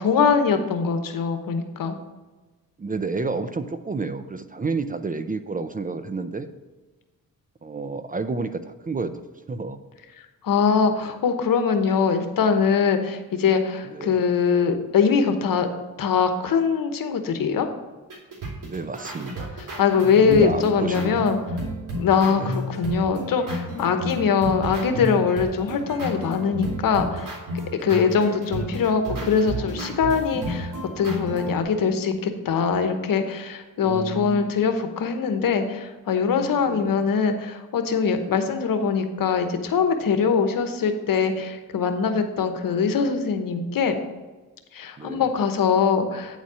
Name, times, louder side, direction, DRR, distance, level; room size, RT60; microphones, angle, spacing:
voice 1, 0.0-2.0 10.4-15.7 16.0-17.7 19.8-21.4 22.0-27.3 27.7-44.0 44.7-46.4, left 6 dB, 70° left, 7 dB, 1.0 m, -22 dB
voice 2, 2.8-6.5 7.6-9.8 13.8-14.2 18.6-19.5 20.2-21.3 22.2-22.5 33.8-34.5 36.6-37.0 45.0-45.3, right 4 dB, 25° right, 11 dB, 0.5 m, -30 dB
sound 1, 18.1-31.6, equal, 60° right, 2.8 m, -32 dB
9.1 x 4.2 x 6.1 m, 1.2 s
cardioid pair, 85°, 35 cm